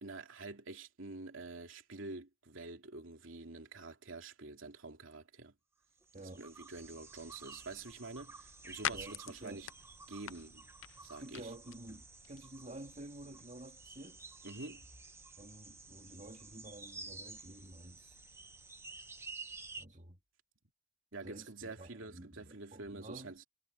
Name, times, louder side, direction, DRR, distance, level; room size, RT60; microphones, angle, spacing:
voice 1, 0.0-5.5 6.4-9.7 10.1-10.7 11.0-11.5 14.4-14.8 21.1-23.4, right 3 dB, 80° right, 2.7 m, -47 dB
sound 1, 6.0-19.9, right 3 dB, 15° right, 1.0 m, -52 dB
sound 2, 7.6-16.3, left 9 dB, 75° left, 0.5 m, -48 dB
voice 2, 8.9-9.6 11.2-14.2 15.4-18.2 19.8-20.2 21.2-23.3, right 1 dB, 40° right, 2.1 m, -51 dB
head